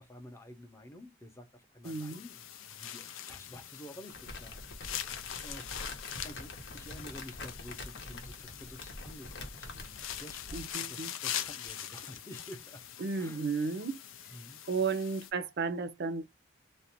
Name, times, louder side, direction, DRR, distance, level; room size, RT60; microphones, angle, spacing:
voice 1, 0.0-5.9 6.2-12.8 13.2-13.4 14.3-14.6, equal, 15° left, 0.6 m, -50 dB
sound 1, 1.8-15.3, left 10 dB, 85° left, 0.5 m, -43 dB
voice 2, 1.8-2.2 10.5-11.1 13.0-14.0 14.7-16.3, right 4 dB, 55° right, 0.5 m, -33 dB
Crumpling crinkling, 4.1-10.7, left 2 dB, 60° left, 0.8 m, -45 dB
2.5 x 2.1 x 2.8 m
head